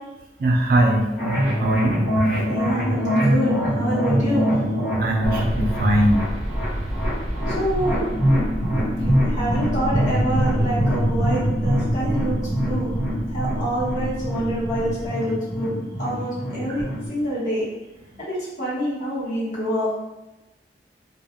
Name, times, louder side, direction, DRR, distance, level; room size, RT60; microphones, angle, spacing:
voice 1, 0.4-2.5 5.0-6.3, right 1 dB, 55° right, 1 dB, 0.3 m, -21 dB
sound 1, 1.2-17.1, equal, 65° left, 1.1 m, -24 dB
voice 2, 2.4-4.5 7.5-8.0 8.9-12.9 13.3-16.8 17.1-17.6 18.2-19.9, equal, 45° left, -8 dB, 0.9 m, -26 dB
sound 2, 5.2-15.1, equal, ahead, 0.5 m, -30 dB
2.2 x 2.1 x 2.8 m, 1.0 s
head